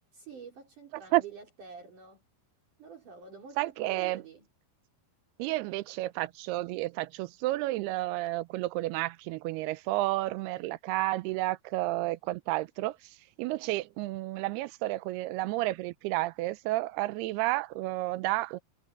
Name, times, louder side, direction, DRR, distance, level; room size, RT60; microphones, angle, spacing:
voice 1, 0.1-2.2 2.8-4.5, right 6 dB, 55° right, 5.3 m, -48 dB
voice 2, 3.6-4.2 5.4-18.6, right 18 dB, 85° right, 2.6 m, -31 dB
omnidirectional pair, 4.6 m